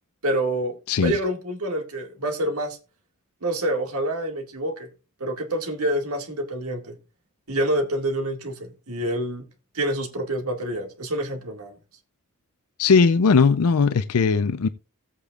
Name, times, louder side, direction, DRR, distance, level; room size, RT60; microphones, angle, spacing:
voice 1, 0.2-2.8 3.4-4.9 5.2-7.0 7.5-9.4 9.7-11.7, right 1 dB, 85° right, 2.1 m, -27 dB
voice 2, 12.8-14.7, left 5 dB, 80° left, 0.5 m, -18 dB
16.0 x 8.3 x 2.4 m
head